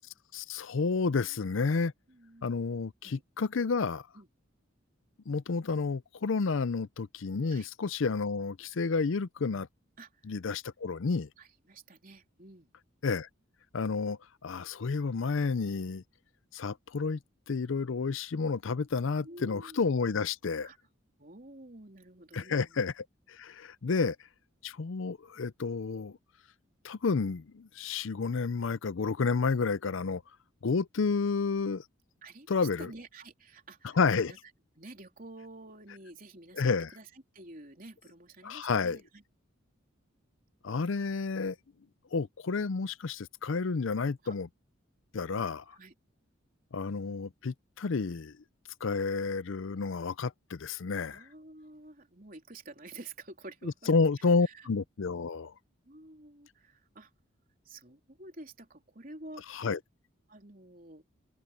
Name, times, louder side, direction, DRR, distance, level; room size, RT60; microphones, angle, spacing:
voice 1, 0.3-1.9 2.4-4.0 5.3-9.7 10.2-11.3 13.0-13.3 13.7-16.0 16.5-17.2 17.5-20.7 22.3-24.2 24.6-26.2 26.8-30.2 30.6-31.8 32.5-32.9 34.0-34.3 36.6-36.9 38.4-39.0 40.6-41.6 42.1-44.5 45.1-45.6 46.7-48.3 48.8-51.2 53.9-55.5 59.5-59.8, left 4 dB, 70° left, 0.5 m, -30 dB
voice 2, 1.1-1.4 2.1-2.6 3.0-3.2 4.1-4.3 7.5-7.7 10.0-10.2 11.4-12.7 19.2-19.8 20.6-20.8 21.2-22.8 32.2-34.0 34.3-34.4 34.7-39.2 42.6-42.7 44.2-44.4 45.2-45.5 45.7-45.9 51.0-53.9 54.2-54.7 55.8-57.1 57.7-59.7 60.3-61.0, right 2 dB, 40° right, 3.7 m, -50 dB
open air
head